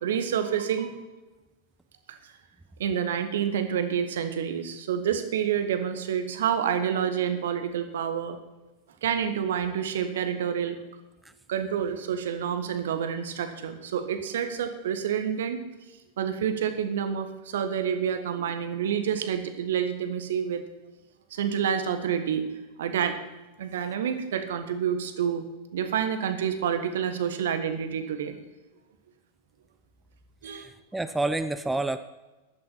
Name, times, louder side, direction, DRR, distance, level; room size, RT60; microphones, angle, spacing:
voice 1, 0.0-1.0 2.1-2.3 2.8-8.4 9.0-10.8 11.5-15.6 16.2-20.6 21.3-22.5 22.8-23.2 23.6-25.4 25.7-28.4 30.4-30.7, right 8 dB, 60° right, 9 dB, 1.5 m, -28 dB
voice 2, 30.4-32.0, right 2 dB, 5° right, 11 dB, 0.6 m, -29 dB
15.0 x 12.0 x 4.3 m, 1.1 s
figure-of-eight pair, 90°, 0 cm